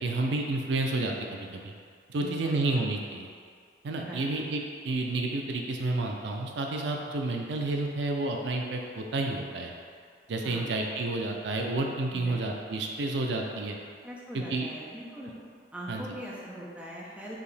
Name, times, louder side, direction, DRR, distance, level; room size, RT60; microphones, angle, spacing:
voice 1, 0.0-1.7 2.1-3.3 3.8-9.7 10.3-13.8 14.3-14.7 15.9-16.0, right 2 dB, 75° right, 1 dB, 0.4 m, -30 dB
voice 2, 2.2-2.8 4.0-4.3 10.4-11.0 12.1-12.4 14.0-15.3 15.7-17.4, equal, 5° right, -6 dB, 0.6 m, -42 dB
4.8 x 2.8 x 3.3 m, 2.1 s
head